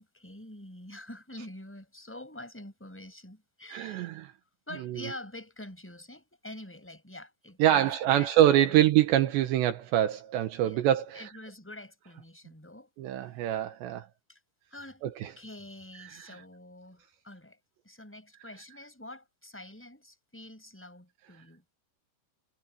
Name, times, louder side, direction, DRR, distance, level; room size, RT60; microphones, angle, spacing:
voice 1, 0.0-4.2 4.7-8.8 10.6-10.8 11.1-12.9 13.2-13.4 14.3-14.4 14.7-15.0 15.4-17.6 17.8-21.6, left 1 dB, ahead, 7.4 m, -46 dB
voice 2, 3.7-4.3 4.8-5.0 7.6-11.3 13.0-14.1 15.0-15.3, right 12 dB, 75° right, 3.2 m, -25 dB
omnidirectional pair, 5.4 m